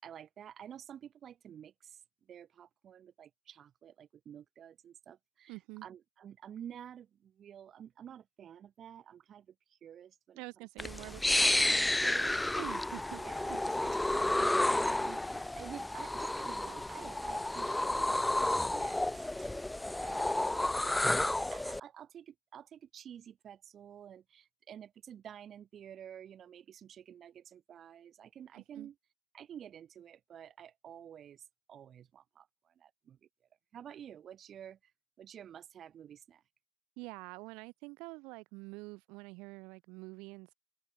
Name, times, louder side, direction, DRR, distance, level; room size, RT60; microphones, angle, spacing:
voice 1, 0.0-10.4 13.2-19.0 19.4-29.0 29.3-31.4 31.7-33.3 33.7-34.9 35.2-36.4, right 9 dB, 45° right, 4.8 m, -51 dB
voice 2, 5.5-5.9 10.4-13.2 13.5-13.6 28.5-28.9 37.0-40.5, right 26 dB, 85° right, 2.0 m, -47 dB
sound 1, 10.8-21.8, left 1 dB, 5° left, 0.4 m, -31 dB
open air
cardioid pair, 125°, 0 cm